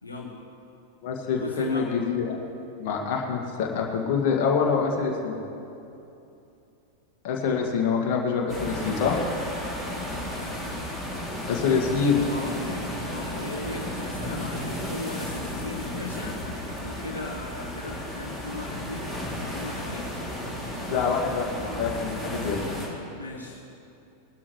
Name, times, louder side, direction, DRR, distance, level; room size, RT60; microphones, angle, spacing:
voice 1, 0.0-0.3 1.2-2.0 12.1-16.4 16.8-20.1 23.1-23.6, left 2 dB, 75° left, -1 dB, 1.1 m, -38 dB
voice 2, 1.0-2.4 2.8-5.4 7.2-9.2 11.5-12.2 20.9-22.6, left 5 dB, 45° left, 0 dB, 2.0 m, -25 dB
sound 1, 8.5-22.9, left 1 dB, 5° right, 2.9 m, -33 dB
21.0 x 12.0 x 3.3 m, 2.8 s
figure-of-eight pair, 90°, 0 cm